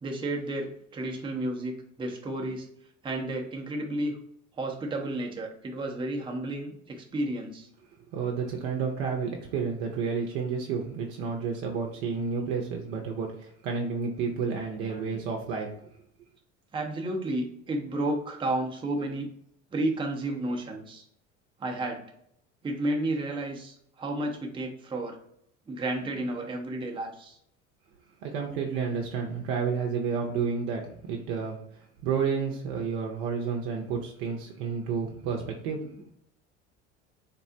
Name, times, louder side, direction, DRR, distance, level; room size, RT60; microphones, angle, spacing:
voice 1, 0.0-1.7 2.0-2.7 3.0-4.2 4.6-7.7 14.8-15.2 16.7-19.3 19.7-21.0 21.6-22.0 22.6-25.2 25.7-27.4, right 1 dB, 15° right, 1 dB, 0.6 m, -32 dB
voice 2, 8.1-15.7 28.2-31.6 32.0-35.9, right 5 dB, 65° right, 1 dB, 0.7 m, -30 dB
3.6 x 2.0 x 2.6 m, 0.71 s
hypercardioid pair, 70°, 37 cm